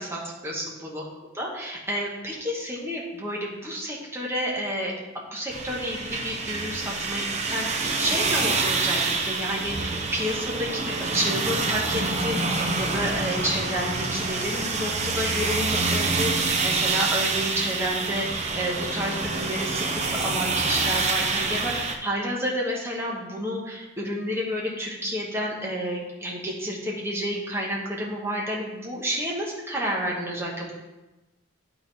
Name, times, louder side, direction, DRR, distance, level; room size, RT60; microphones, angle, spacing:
voice 1, 0.0-1.0 1.4-5.0 5.3-30.7, equal, 10° right, -3 dB, 1.2 m, -30 dB
sound 1, 5.5-21.9, right 3 dB, 35° right, 0.6 m, -27 dB
11.0 x 3.9 x 3.4 m, 1.1 s
head